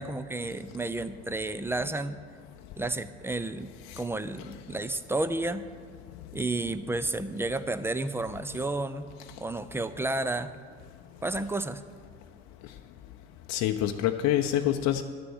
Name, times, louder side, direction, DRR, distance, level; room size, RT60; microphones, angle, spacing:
voice 1, 0.0-2.2 2.8-5.6 6.3-9.1 9.4-10.5 11.2-11.8, right 2 dB, 5° right, 12 dB, 0.6 m, -31 dB
voice 2, 13.5-15.0, left 12 dB, 55° left, 6 dB, 0.7 m, -26 dB
11.5 x 6.8 x 7.1 m, 2.2 s
hypercardioid pair, 65°, 34 cm